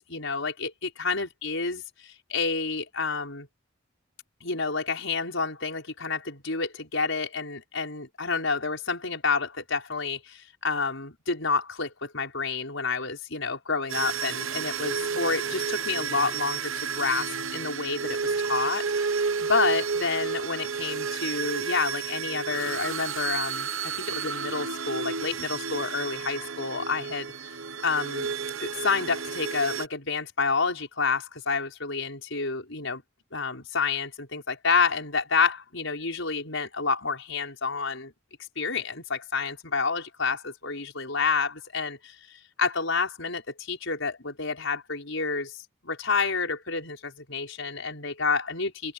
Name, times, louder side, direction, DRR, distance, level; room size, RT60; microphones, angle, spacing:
voice 1, 0.0-3.5 4.4-23.7 24.1-27.3 27.8-28.3 28.6-33.0 33.3-38.1 38.6-42.2 42.6-48.9, left 4 dB, 70° left, 5.5 m, -29 dB
sound 1, 13.9-29.9, right 6 dB, 80° right, 1.0 m, -31 dB
open air
head